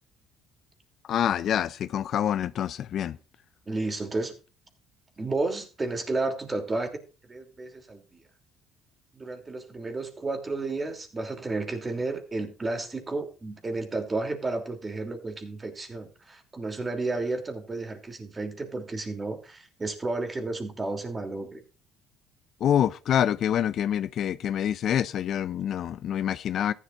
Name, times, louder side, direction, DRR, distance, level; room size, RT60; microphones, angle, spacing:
voice 1, 1.1-3.2 22.6-26.7, left 10 dB, 55° left, 0.4 m, -26 dB
voice 2, 3.7-4.3 5.2-7.0 7.3-8.2 9.1-21.6, right 3 dB, 25° right, 2.9 m, -32 dB
14.5 x 11.0 x 2.5 m
cardioid pair, 95°, 0 cm